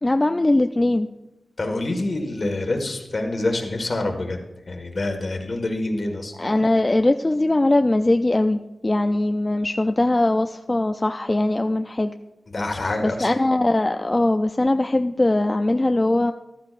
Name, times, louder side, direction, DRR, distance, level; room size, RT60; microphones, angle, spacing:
voice 1, 0.0-1.1 6.4-12.1 13.0-16.3, left 2 dB, 25° left, 6 dB, 0.4 m, -20 dB
voice 2, 1.6-4.4 4.7-6.3 12.5-13.3, left 2 dB, 50° left, 4 dB, 1.6 m, -26 dB
14.5 x 12.5 x 2.5 m, 0.98 s
wide cardioid pair, 85°, 0 cm